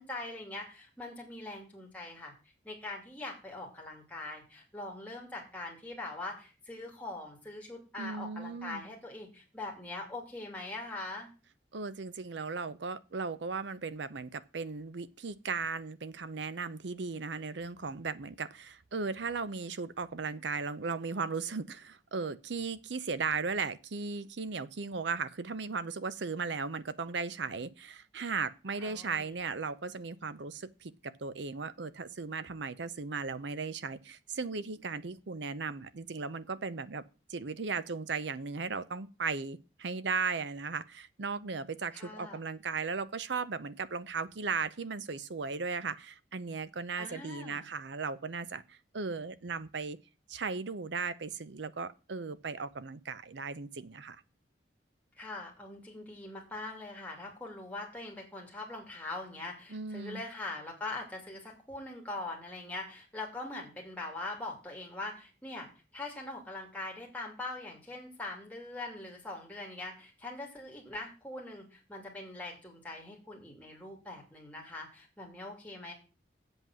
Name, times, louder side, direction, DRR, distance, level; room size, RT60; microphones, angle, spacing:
voice 1, 0.0-2.3 2.6-11.3 28.8-29.3 41.9-42.4 47.0-47.7 55.2-65.7 65.9-75.9, left 2 dB, 10° left, 2.7 m, -42 dB
voice 2, 8.0-8.8 11.7-37.0 37.3-50.0 50.3-54.2 59.7-60.2, right 4 dB, 70° right, 0.7 m, -36 dB
8.0 x 7.4 x 6.2 m
head